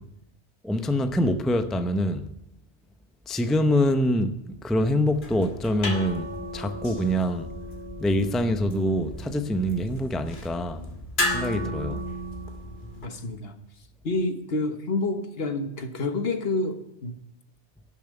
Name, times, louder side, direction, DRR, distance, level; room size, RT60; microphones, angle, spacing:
voice 1, 0.6-2.3 3.3-7.5 8.0-10.8 11.3-12.0, equal, ahead, 0.6 m, -25 dB
sound 1, 5.0-13.1, left 1 dB, 50° left, 1.9 m, -34 dB
voice 2, 13.0-13.6 14.0-17.2, left 2 dB, 65° left, 1.4 m, -28 dB
11.5 x 7.2 x 10.0 m
omnidirectional pair, 1.1 m